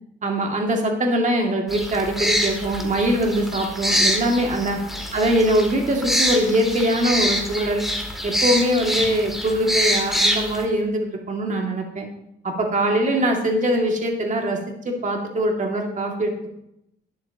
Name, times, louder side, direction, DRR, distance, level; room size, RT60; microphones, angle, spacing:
voice 1, 0.2-4.8 5.1-7.9 8.2-12.1 12.4-14.6 14.8-16.5, right 1 dB, 40° right, 1 dB, 2.4 m, -22 dB
sound 1, 1.7-10.6, equal, ahead, 2.0 m, -25 dB
12.5 x 10.0 x 3.0 m, 0.78 s
cardioid pair, 90°, 20 cm